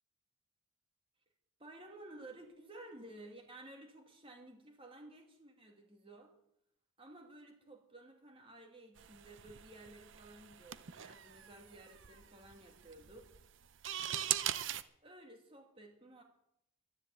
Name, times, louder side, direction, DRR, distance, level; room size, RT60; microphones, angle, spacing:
voice 1, 1.6-6.3 7.0-13.3 15.0-16.2, right 1 dB, 25° right, 3 dB, 2.5 m, -54 dB
sound 1, 9.0-14.8, right 11 dB, 65° right, 0.7 m, -41 dB
12.5 x 10.5 x 8.4 m, 0.78 s
head